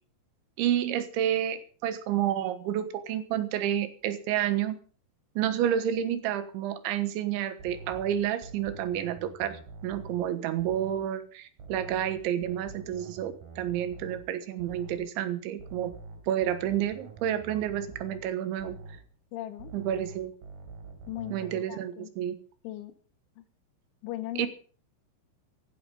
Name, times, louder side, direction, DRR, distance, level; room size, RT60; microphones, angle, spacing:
voice 1, 0.6-4.8 5.4-15.9 16.3-18.8 19.7-20.3 21.3-22.4 24.4-24.5, right 10 dB, 85° right, 11 dB, 3.7 m, -30 dB
sound 1, 7.6-11.1 11.6-15.1 15.6-19.1 19.6-21.6, right 3 dB, 50° right, 4.8 m, -46 dB
voice 2, 19.3-19.7 21.1-22.1 22.6-22.9 23.4-23.5 24.0-24.5, left 14 dB, 85° left, 11 dB, 3.5 m, -38 dB
15.5 x 11.5 x 5.5 m, 0.41 s
omnidirectional pair, 5.3 m